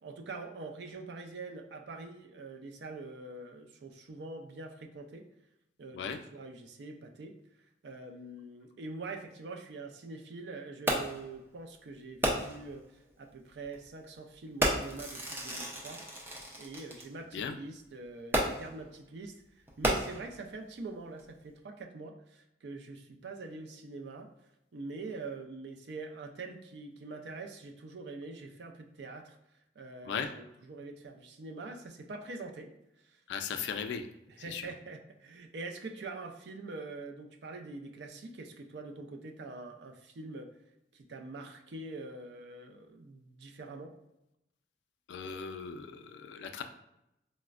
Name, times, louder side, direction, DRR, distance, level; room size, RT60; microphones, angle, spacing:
voice 1, 0.0-5.3 5.8-7.4 7.8-16.0 16.6-24.3 24.7-29.4 29.8-32.7 33.0-33.2 33.5-33.6 34.3-40.5 40.9-43.9, right 3 dB, 75° right, 4 dB, 0.4 m, -44 dB
Fireworks, 10.9-11.3 12.2-12.7 13.6-13.8 14.6-17.0 18.3-18.8 19.7-20.5 21.2-21.3, right 1 dB, 10° right, 0.4 m, -32 dB
voice 2, 33.3-34.1 34.5-34.6 45.1-46.6, left 6 dB, 80° left, 7 dB, 0.3 m, -37 dB
4.1 x 2.1 x 2.4 m, 0.87 s
head